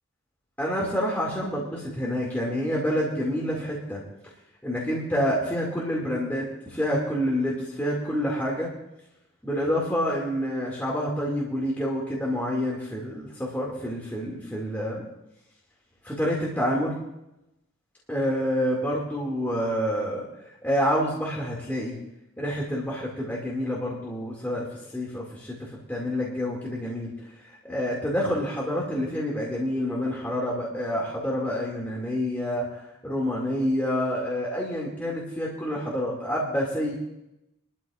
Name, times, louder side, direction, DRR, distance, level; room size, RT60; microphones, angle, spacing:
voice 1, 0.6-4.0 4.6-8.7 9.4-15.1 16.0-17.0 18.1-20.2 20.6-22.0 22.4-24.7 24.9-27.1 27.6-32.7 33.0-36.9, equal, 10° left, -4 dB, 2.0 m, -28 dB
22.5 x 12.5 x 2.4 m, 0.89 s
head